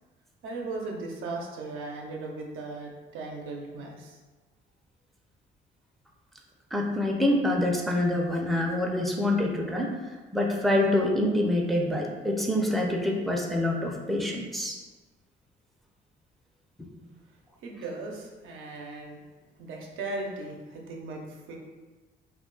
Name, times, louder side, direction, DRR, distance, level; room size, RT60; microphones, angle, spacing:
voice 1, 0.4-4.2 17.6-19.2 19.6-21.6, right 3 dB, 85° right, 0 dB, 0.6 m, -37 dB
voice 2, 6.7-9.9 10.3-14.8, left 1 dB, ahead, -1 dB, 0.4 m, -26 dB
2.3 x 2.2 x 3.7 m, 1.3 s
cardioid pair, 90°, 20 cm